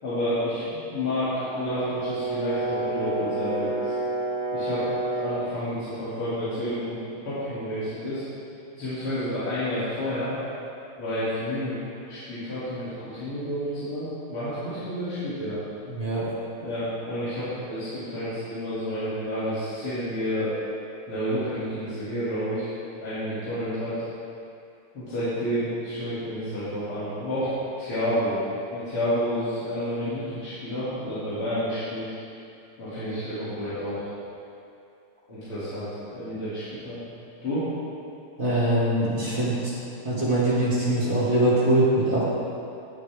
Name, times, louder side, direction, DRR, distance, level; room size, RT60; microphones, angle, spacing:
voice 1, 0.0-3.9 4.5-4.8 5.1-7.0 7.2-8.2 8.7-10.3 11.0-15.6 16.6-20.6 21.1-22.7 23.0-24.0 24.9-28.4 28.7-32.1 32.8-34.1 35.3-37.0 37.4-37.7, equal, 80° left, -14 dB, 3.7 m, -30 dB
Brass instrument, 1.3-5.5, right 2 dB, 75° right, 3.6 m, -29 dB
voice 2, 15.9-16.3 38.4-39.7 40.0-42.2, right 1 dB, 25° right, -9 dB, 2.7 m, -22 dB
18.0 x 6.6 x 3.6 m, 2.6 s
omnidirectional pair, 2.4 m